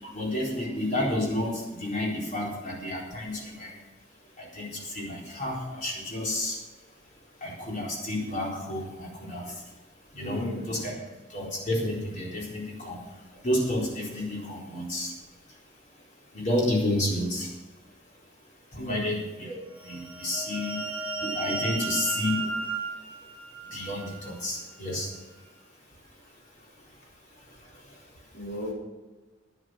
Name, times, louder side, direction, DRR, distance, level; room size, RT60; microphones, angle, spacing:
voice 1, 0.1-3.7 4.5-4.7 4.9-6.5 7.4-9.4 10.1-10.9 11.3-13.0 13.4-15.1 16.3-17.5 18.8-19.6 19.8-20.8 21.2-22.4 23.7-25.1, left 1 dB, 40° left, -3 dB, 4.1 m, -30 dB
voice 2, 10.3-10.6 18.8-19.1 28.3-28.7, left 1 dB, 70° left, 0 dB, 2.5 m, -35 dB
sound 1, 19.8-24.3, right 3 dB, 10° right, 3.8 m, -34 dB
11.0 x 9.5 x 6.2 m, 1.2 s
head